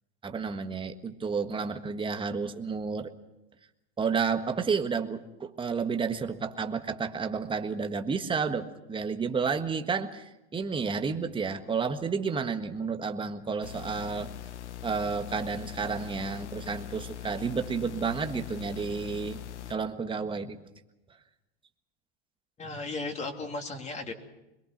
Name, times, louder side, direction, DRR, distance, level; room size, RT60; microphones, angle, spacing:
voice 1, 0.2-3.1 4.0-14.3 14.8-19.4 19.7-20.6, right 5 dB, 15° right, 7 dB, 1.6 m, -31 dB
sound 1, 13.6-19.8, left 11 dB, 85° left, 1.0 m, -41 dB
voice 2, 22.6-24.1, left 3 dB, 20° left, 4 dB, 2.7 m, -35 dB
23.0 x 22.0 x 6.1 m, 0.94 s
hypercardioid pair, 115°, 34 cm